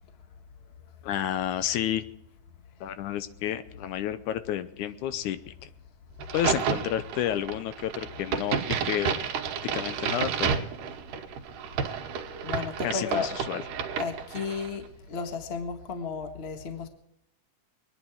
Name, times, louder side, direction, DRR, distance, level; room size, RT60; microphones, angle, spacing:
voice 1, 1.0-2.0 2.8-5.7 6.3-8.6 8.9-9.1 9.7-10.6 12.8-13.6, left 11 dB, 80° left, 13 dB, 2.1 m, -30 dB
Crack, 6.2-14.8, right 7 dB, 85° right, 2.8 m, -31 dB
voice 2, 12.4-13.3 14.0-16.9, left 5 dB, 45° left, 7 dB, 0.8 m, -33 dB
23.0 x 10.0 x 4.6 m, 0.80 s
omnidirectional pair, 3.6 m